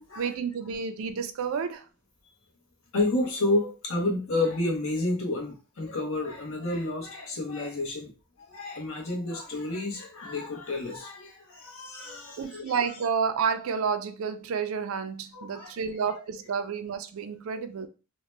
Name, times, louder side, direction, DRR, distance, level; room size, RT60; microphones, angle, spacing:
voice 1, 0.2-1.9 12.4-17.9, right 6 dB, 65° right, 0.3 m, -30 dB
voice 2, 2.9-8.1 8.4-12.9 15.3-16.1 17.5-17.6, left 2 dB, 65° left, 0.9 m, -30 dB
2.7 x 2.1 x 3.1 m
head